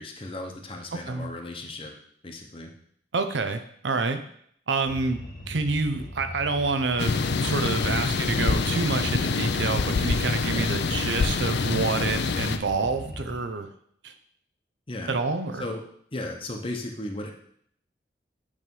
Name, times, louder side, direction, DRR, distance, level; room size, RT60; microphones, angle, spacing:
voice 1, 0.0-1.9 2.2-2.7 7.9-8.1 10.5-10.7 14.9-15.2 15.5-15.8 16.1-17.3, left 1 dB, 30° left, 3 dB, 0.8 m, -35 dB
voice 2, 3.1-4.2 4.7-5.2 5.5-7.2 7.4-13.7 14.0-14.1 15.1-15.6, right 4 dB, 90° right, 9 dB, 0.7 m, -28 dB
sound 1, 4.9-13.4, left 1 dB, 50° left, 1.4 m, -40 dB
sound 2, 7.0-12.6, left 4 dB, 70° left, 0.5 m, -25 dB
8.4 x 3.3 x 5.4 m, 0.65 s
head